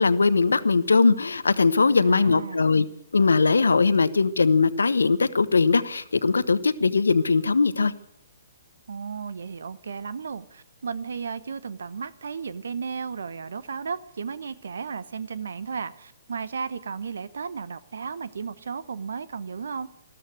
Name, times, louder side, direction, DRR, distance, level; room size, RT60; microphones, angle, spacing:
voice 1, 0.0-2.9 3.1-7.9, left 4 dB, 75° left, 0.9 m, -20 dB
voice 2, 1.9-2.7 8.9-19.9, right 5 dB, 65° right, 1.0 m, -34 dB
13.5 x 13.0 x 7.9 m
figure-of-eight pair, 125°, 0 cm